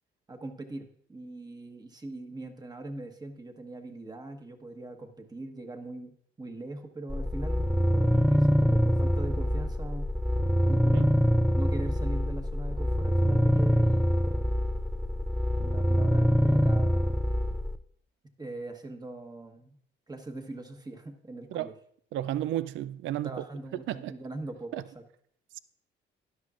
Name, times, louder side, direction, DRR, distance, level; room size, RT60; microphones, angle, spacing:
voice 1, 0.3-10.1 10.7-11.1 11.5-14.6 15.6-17.2 18.4-19.8 20.1-21.7 23.2-25.0, right 2 dB, 20° right, 1.2 m, -41 dB
sound 1, 7.1-17.7, equal, ahead, 0.4 m, -25 dB
voice 2, 22.1-23.4 23.9-24.1 24.7-24.8, right 13 dB, 75° right, 0.4 m, -32 dB
12.5 x 10.5 x 2.5 m
cardioid pair, 90°, 20 cm